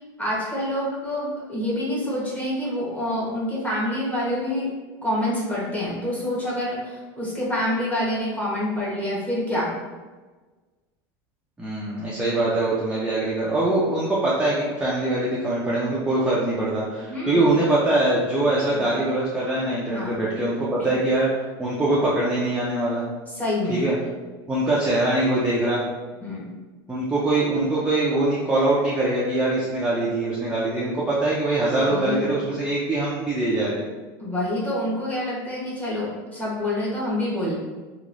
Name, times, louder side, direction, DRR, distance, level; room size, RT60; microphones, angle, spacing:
voice 1, 0.2-4.7 5.0-9.7 17.1-17.5 18.7-18.8 19.9-20.2 20.8-20.9 23.3-23.8 26.2-26.5 31.9-32.3 34.2-37.6, left 1 dB, 10° left, -7 dB, 1.1 m, -27 dB
voice 2, 11.6-21.3 21.6-23.0 23.7-23.9 24.5-25.9 26.9-33.8, right 2 dB, 10° right, -7 dB, 0.5 m, -23 dB
3.0 x 2.4 x 2.5 m, 1.3 s
supercardioid pair, 125°, 12 cm